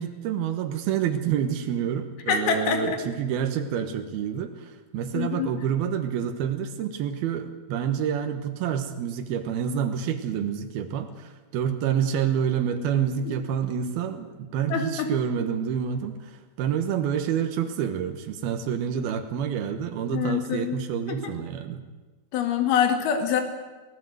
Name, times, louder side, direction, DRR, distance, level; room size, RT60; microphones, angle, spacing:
voice 1, 0.0-21.8, right 8 dB, 80° right, 6 dB, 3.2 m, -28 dB
voice 2, 2.3-3.0 5.1-5.5 13.3-13.4 14.7-15.1 20.1-20.8 21.1-21.3 22.3-23.4, left 7 dB, 80° left, 5 dB, 3.9 m, -25 dB
23.0 x 17.0 x 7.9 m, 1.3 s
omnidirectional pair, 4.3 m